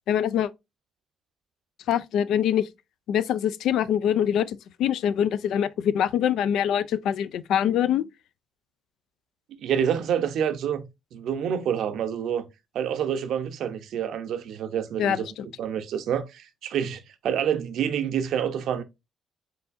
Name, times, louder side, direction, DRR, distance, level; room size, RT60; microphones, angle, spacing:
voice 1, 0.1-0.5 1.9-2.7 3.1-8.1 15.0-15.5, left 9 dB, 80° left, 0.3 m, -24 dB
voice 2, 9.6-12.4 12.7-15.3 15.6-18.8, right 8 dB, 75° right, 0.6 m, -27 dB
4.7 x 3.8 x 2.5 m
cardioid pair, 90°, 0 cm